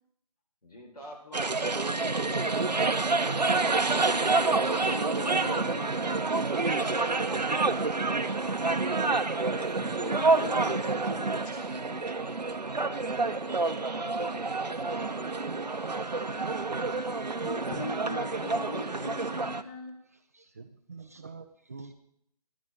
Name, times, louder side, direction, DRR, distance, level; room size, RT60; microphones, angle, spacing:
voice 1, 0.6-3.0 6.6-9.1 12.8-15.7, left 1 dB, 65° left, -1 dB, 4.8 m, -48 dB
sound 1, 1.3-19.6, right 3 dB, 80° right, 0.8 m, -28 dB
voice 2, 3.5-6.0 9.7-12.1 16.4-16.6 17.0-20.0, left 3 dB, 15° left, 0 dB, 1.1 m, -41 dB
voice 3, 20.1-21.9, right 4 dB, 25° right, 7 dB, 0.4 m, -47 dB
15.5 x 11.0 x 3.7 m, 0.71 s
figure-of-eight pair, 150°, 21 cm